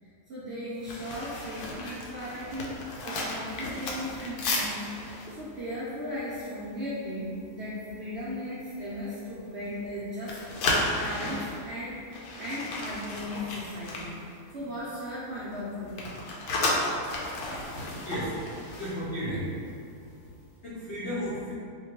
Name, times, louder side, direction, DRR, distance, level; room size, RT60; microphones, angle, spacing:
voice 1, 0.0-4.9 5.3-16.0, left 1 dB, 70° right, -9 dB, 0.6 m, -37 dB
sound 1, 0.8-6.9 7.3-7.5 7.9-8.2 8.7-9.9 10.2-14.9 15.2-19.7 20.0-20.2, left 2 dB, 75° left, 1.0 m, -34 dB
voice 2, 18.0-18.4 18.8-19.5 20.6-21.5, equal, 60° left, -9 dB, 0.7 m, -33 dB
4.3 x 2.2 x 2.9 m, 2.5 s
omnidirectional pair, 1.8 m